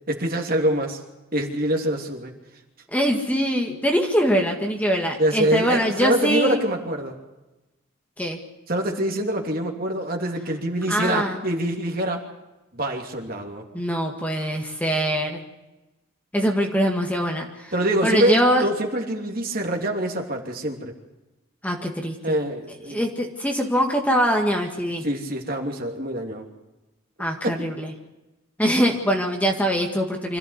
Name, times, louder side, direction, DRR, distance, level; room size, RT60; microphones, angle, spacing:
voice 1, 0.1-1.0 1.3-2.3 5.2-7.1 8.7-12.2 12.7-13.6 17.7-20.9 22.2-23.0 25.0-26.5, right 1 dB, 45° right, 2 dB, 2.9 m, -25 dB
voice 2, 2.9-6.6 8.2-8.4 10.9-11.4 13.7-15.4 16.3-17.7 18.0-18.7 21.6-22.4 22.9-25.0 27.2-27.9 28.6-30.4, equal, 5° left, 2 dB, 1.9 m, -23 dB
26.0 x 14.5 x 8.2 m, 1.0 s
head